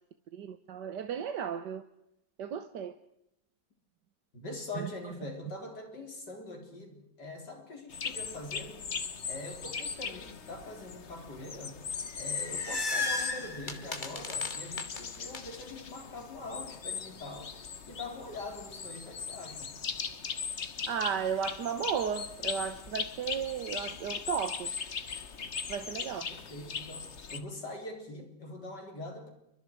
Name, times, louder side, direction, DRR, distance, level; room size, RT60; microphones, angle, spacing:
voice 1, 0.3-1.8 2.4-2.9 4.7-4.9 20.9-24.7 25.7-26.3, right 8 dB, 70° right, 1.6 m, -34 dB
voice 2, 4.3-8.9 9.3-11.8 12.2-17.5 17.9-19.7 26.0-29.3, left 2 dB, 70° left, 4.6 m, -43 dB
sound 1, 7.9-27.4, left 6 dB, 40° left, 1.4 m, -39 dB
sound 2, 12.1-15.4, left 3 dB, 25° left, 2.0 m, -35 dB
29.0 x 24.0 x 4.8 m
omnidirectional pair, 1.9 m